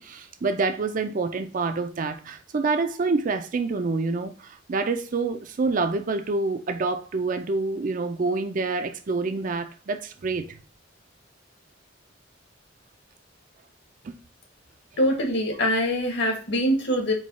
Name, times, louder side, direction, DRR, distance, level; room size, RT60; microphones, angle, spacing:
voice 1, 0.0-10.6 14.0-14.2, right 3 dB, 45° right, 0.4 m, -27 dB
voice 2, 15.0-17.1, equal, 60° left, 1.4 m, -23 dB
4.6 x 2.3 x 4.1 m
head